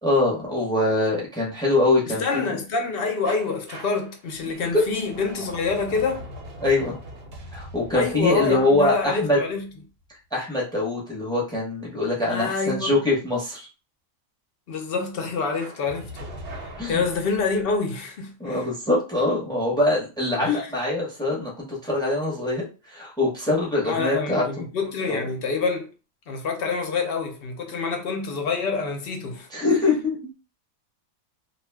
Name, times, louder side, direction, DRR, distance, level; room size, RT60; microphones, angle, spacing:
voice 1, 0.0-2.5 4.7-4.8 6.6-7.0 7.5-9.4 10.3-13.7 16.8-17.0 18.4-24.6 25.1-25.2 29.5-30.2, left 2 dB, 5° left, 0.7 m, -23 dB
voice 2, 2.1-6.2 7.9-9.7 12.3-13.0 14.7-18.6 20.4-20.7 23.8-25.9 26.3-29.5, left 4 dB, 60° left, 0.6 m, -27 dB
sound 1, 3.2-10.0 15.5-17.8, equal, 55° right, 0.8 m, -41 dB
2.4 x 2.2 x 3.3 m
omnidirectional pair, 1.5 m